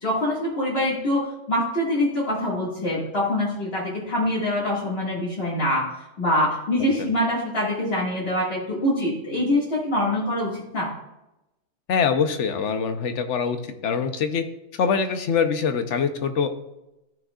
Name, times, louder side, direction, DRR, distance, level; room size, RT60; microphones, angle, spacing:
voice 1, 0.0-5.8 6.2-10.9, left 1 dB, 55° left, -7 dB, 2.2 m, -24 dB
voice 2, 11.9-14.4 14.8-16.5, left 6 dB, 80° left, 8 dB, 1.1 m, -24 dB
13.5 x 6.3 x 2.4 m, 0.93 s
omnidirectional pair, 1.2 m